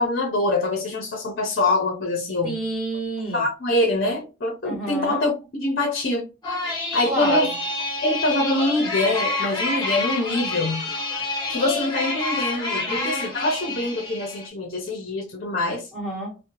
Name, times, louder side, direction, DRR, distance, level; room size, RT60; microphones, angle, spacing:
voice 1, 0.0-2.6 3.3-6.2 6.9-7.5 8.0-10.9 11.5-15.9, left 2 dB, 45° left, 0.6 m, -24 dB
voice 2, 2.4-3.5 4.6-5.2 7.0-7.5 12.8-13.8 15.9-16.4, right 1 dB, 5° right, 1.4 m, -29 dB
sound 1, 6.4-14.5, left 3 dB, 20° left, 0.8 m, -28 dB
2.7 x 2.1 x 2.9 m
head